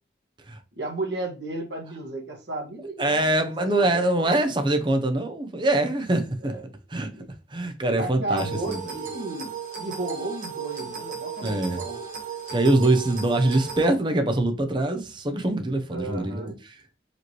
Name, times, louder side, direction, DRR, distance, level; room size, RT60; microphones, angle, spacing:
voice 1, 0.8-4.4 6.4-6.7 7.0-7.2 7.8-12.0 15.9-16.6, right 2 dB, 75° right, 1.5 m, -34 dB
voice 2, 3.0-6.5 6.9-7.1 7.5-8.9 11.4-11.8 12.5-17.0, right 2 dB, 25° right, 0.6 m, -24 dB
sound 1, 8.4-13.8, right 6 dB, 45° right, 1.3 m, -35 dB
5.0 x 3.2 x 2.9 m
head